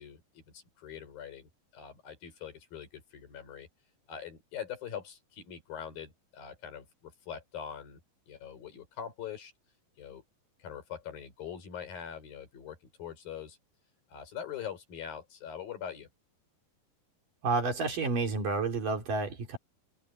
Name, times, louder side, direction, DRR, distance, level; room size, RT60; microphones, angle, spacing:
voice 1, 0.0-3.7 4.1-8.0 8.3-9.5 10.0-10.2 10.6-13.6 14.1-16.1, left 8 dB, 70° left, 6.9 m, -43 dB
voice 2, 17.4-19.6, right 4 dB, 60° right, 5.2 m, -30 dB
open air
omnidirectional pair, 4.3 m